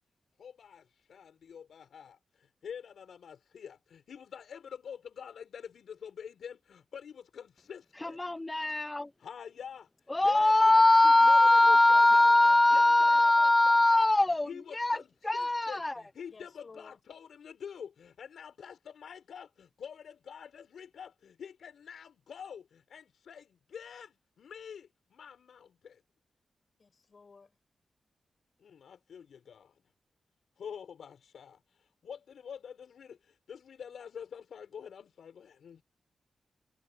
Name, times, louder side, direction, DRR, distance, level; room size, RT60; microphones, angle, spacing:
voice 1, 0.4-8.2 9.2-14.1 14.5-26.0 28.6-29.8 30.6-35.8, left 7 dB, 80° left, 5.5 m, -47 dB
voice 2, 8.0-9.1 10.1-15.0 15.2-15.9, left 2 dB, 15° left, 0.3 m, -22 dB
voice 3, 10.3-10.9 11.9-12.6 16.3-17.0 26.8-27.6, left 4 dB, 35° left, 5.4 m, -54 dB
wide cardioid pair, 160°, 0 cm